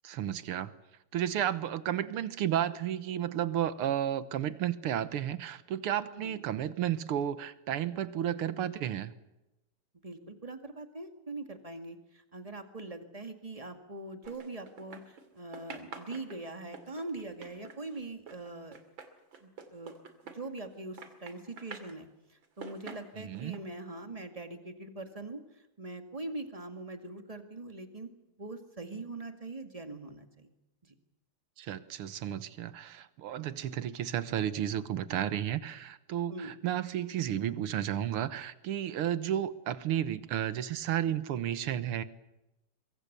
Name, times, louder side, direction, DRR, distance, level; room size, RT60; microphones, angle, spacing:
voice 1, 0.0-0.7 1.1-9.1 23.2-23.6 31.6-42.0, right 10 dB, 85° right, 14 dB, 2.0 m, -32 dB
voice 2, 10.0-18.8 19.4-19.9 20.2-28.1 28.4-30.5 30.8-30.9 36.3-36.6, right 2 dB, 15° right, 7 dB, 2.0 m, -42 dB
sound 1, 14.2-15.3 15.5-20.7 21.0-22.0 22.4-23.6, right 5 dB, 60° right, 3.1 m, -47 dB
24.0 x 23.5 x 6.9 m, 0.98 s
omnidirectional pair, 2.4 m